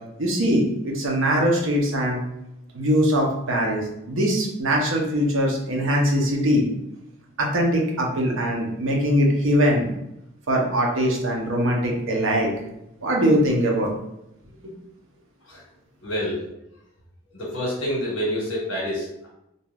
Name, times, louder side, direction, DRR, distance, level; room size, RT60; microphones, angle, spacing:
voice 1, 0.2-2.2 2.7-6.7 7.4-9.9 10.5-12.5 13.0-13.9, equal, 70° right, -1 dB, 0.7 m, -22 dB
voice 2, 16.0-16.4 17.3-19.3, equal, 70° left, -6 dB, 1.0 m, -27 dB
2.7 x 2.3 x 3.3 m, 0.84 s
head